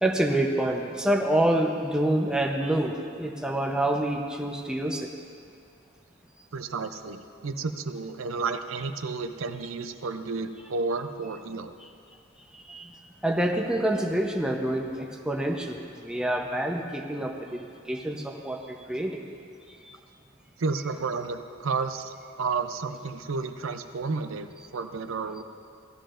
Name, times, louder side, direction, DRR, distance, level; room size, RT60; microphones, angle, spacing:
voice 1, 0.0-5.1 12.5-12.9 13.2-19.2 19.8-19.9, right 1 dB, 5° right, 1 dB, 0.7 m, -27 dB
voice 2, 6.5-11.7 20.6-25.4, right 4 dB, 90° right, 8 dB, 0.5 m, -32 dB
16.5 x 12.5 x 2.5 m, 2.4 s
head